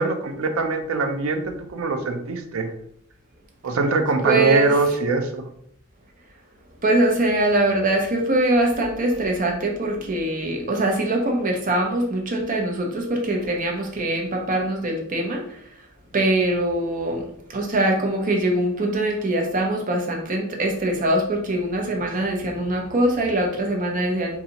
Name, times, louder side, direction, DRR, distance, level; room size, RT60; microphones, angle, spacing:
voice 1, 0.0-2.7 3.6-5.4, right 3 dB, 80° right, 7 dB, 0.5 m, -23 dB
voice 2, 4.2-4.8 6.8-15.6 16.1-24.4, right 1 dB, 40° right, 1 dB, 0.7 m, -23 dB
3.9 x 2.4 x 2.8 m, 0.70 s
head